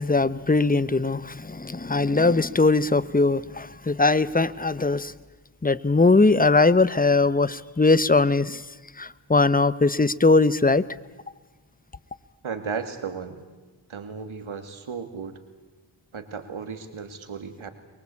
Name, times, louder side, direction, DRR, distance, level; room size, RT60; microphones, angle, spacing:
voice 1, 0.0-5.1 5.6-8.6 9.0-10.9, left 3 dB, 20° left, 0.9 m, -20 dB
voice 2, 12.4-13.4 13.9-15.4 16.1-17.7, right 5 dB, 80° right, 2.4 m, -34 dB
23.0 x 23.0 x 8.5 m
cardioid pair, 45°, 48 cm